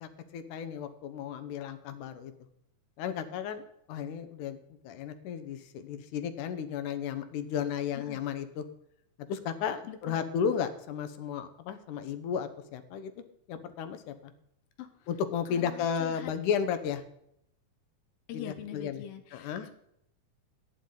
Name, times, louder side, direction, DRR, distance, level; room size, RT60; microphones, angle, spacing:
voice 1, 0.0-2.3 3.0-3.6 3.9-4.6 4.8-8.6 9.3-13.1 13.5-14.1 15.1-17.0 18.3-19.0 19.3-19.7, left 7 dB, 70° left, 10 dB, 2.3 m, -34 dB
voice 2, 9.9-10.2 14.8-15.1 15.5-16.3 18.3-19.7, left 10 dB, 85° left, 8 dB, 2.8 m, -44 dB
16.0 x 10.0 x 3.9 m, 0.73 s
omnidirectional pair, 4.1 m